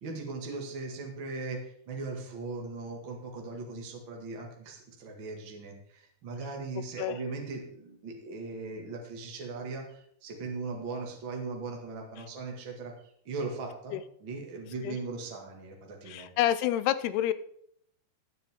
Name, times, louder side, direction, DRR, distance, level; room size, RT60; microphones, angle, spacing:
voice 1, 0.0-12.9 13.2-13.9 14.2-16.3, right 3 dB, 45° right, 0 dB, 1.6 m, -39 dB
voice 2, 16.1-17.3, left 12 dB, 80° left, 13 dB, 2.4 m, -28 dB
18.5 x 8.2 x 3.6 m, 0.67 s
omnidirectional pair, 5.0 m